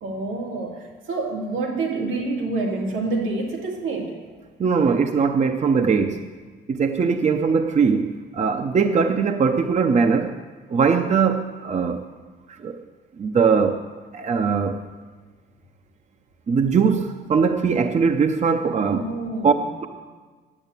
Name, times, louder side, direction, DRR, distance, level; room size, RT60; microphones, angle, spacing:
voice 1, 0.0-4.2 18.9-19.7, right 3 dB, 85° right, 1 dB, 2.3 m, -27 dB
voice 2, 4.6-6.2 6.7-10.3 10.7-12.0 12.5-12.8 13.2-13.8 14.1-14.8 16.5-19.1 19.4-19.5, right 5 dB, 35° right, 7 dB, 0.7 m, -20 dB
11.0 x 7.9 x 8.2 m, 1.5 s
cardioid pair, 90°, 20 cm